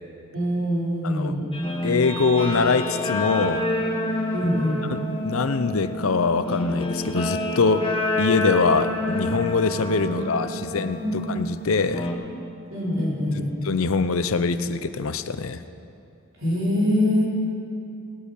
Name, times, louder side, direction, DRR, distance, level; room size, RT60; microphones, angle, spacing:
voice 1, 0.3-1.4 4.3-4.8 10.4-10.7 11.0-11.1 12.7-13.5 16.4-17.2, left 1 dB, 65° right, -6 dB, 4.1 m, -24 dB
Guitar, 1.5-12.1, left 1 dB, 25° left, 1.2 m, -28 dB
voice 2, 1.8-3.6 4.9-7.8 8.2-11.0 11.3-12.1 13.3-15.6, left 4 dB, 75° left, 11 dB, 0.6 m, -23 dB
19.5 x 8.5 x 5.5 m, 2.6 s
head